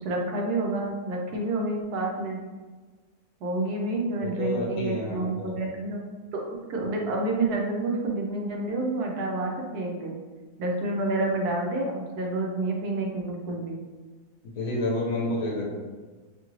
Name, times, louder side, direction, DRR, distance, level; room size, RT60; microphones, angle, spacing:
voice 1, 0.0-2.4 3.4-6.0 6.3-10.1 10.6-13.8, right 2 dB, 85° right, 0 dB, 1.2 m, -29 dB
voice 2, 4.2-5.6 14.5-15.7, left 2 dB, 65° left, -4 dB, 1.1 m, -29 dB
3.1 x 2.4 x 3.0 m, 1.3 s
omnidirectional pair, 1.6 m